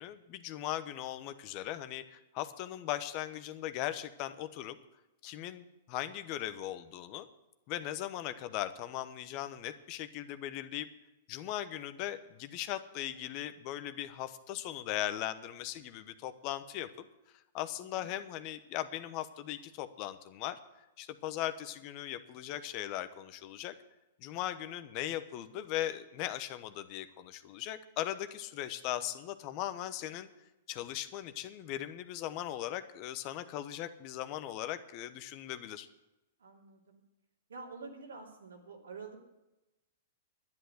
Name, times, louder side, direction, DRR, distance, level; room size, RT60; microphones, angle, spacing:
voice 1, 0.0-4.8 5.2-7.2 7.7-10.9 11.3-17.0 17.5-20.6 21.0-23.7 24.2-30.3 30.7-35.9, left 13 dB, 45° left, 11 dB, 1.0 m, -39 dB
voice 2, 17.8-18.1 36.4-37.0 37.5-39.3, right 4 dB, 80° right, 1 dB, 2.9 m, -48 dB
11.0 x 10.5 x 8.0 m, 0.98 s
hypercardioid pair, 115°, 0 cm